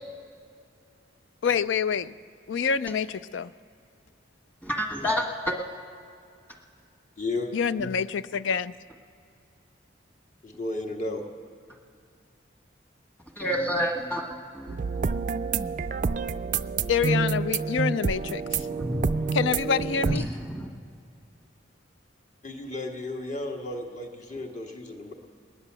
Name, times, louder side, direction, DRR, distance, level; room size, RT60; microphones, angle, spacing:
voice 1, 1.4-2.1 2.5-3.5 7.5-8.7 16.9-18.4 19.3-20.3, left 6 dB, 80° left, 16 dB, 0.4 m, -26 dB
voice 2, 4.6-5.5 13.4-14.2 14.5-14.7 18.7-19.2 20.1-20.7, equal, 10° left, 1 dB, 1.5 m, -29 dB
voice 3, 7.2-7.5 10.4-11.2 22.4-25.1, left 2 dB, 40° left, 1 dB, 1.6 m, -33 dB
sound 1, 14.7-20.2, right 5 dB, 40° right, 0.3 m, -28 dB
20.0 x 10.0 x 6.8 m, 2.4 s
head